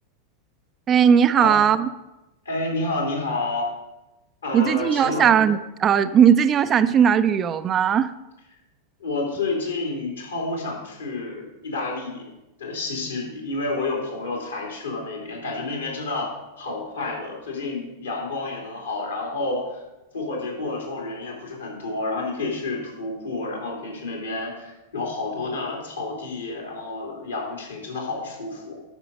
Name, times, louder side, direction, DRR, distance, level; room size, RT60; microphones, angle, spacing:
voice 1, 0.9-1.9 4.5-8.1, right 8 dB, 25° right, 13 dB, 0.4 m, -18 dB
voice 2, 2.4-3.6 4.4-5.2 9.0-12.3 12.6-16.3 16.6-19.8 20.1-28.7, left 3 dB, 75° left, -1 dB, 3.2 m, -29 dB
9.6 x 6.3 x 5.4 m, 0.97 s
figure-of-eight pair, 90°, 0 cm